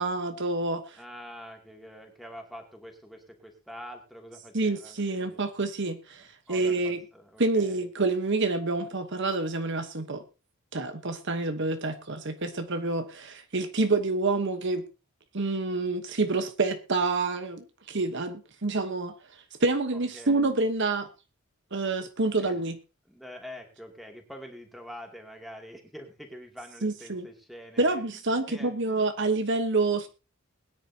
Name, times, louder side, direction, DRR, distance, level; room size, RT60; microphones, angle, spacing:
voice 1, 0.0-1.0 4.5-7.0 7.4-10.2 10.7-14.8 15.3-19.1 19.6-21.1 21.7-22.8 26.8-27.3 27.8-30.1, right 3 dB, 55° right, 8 dB, 1.1 m, -28 dB
voice 2, 1.0-5.4 6.5-7.8 19.9-20.5 22.4-22.6 23.1-28.2 28.5-29.3, equal, ahead, 2 dB, 2.6 m, -46 dB
21.5 x 10.0 x 2.8 m, 0.30 s
head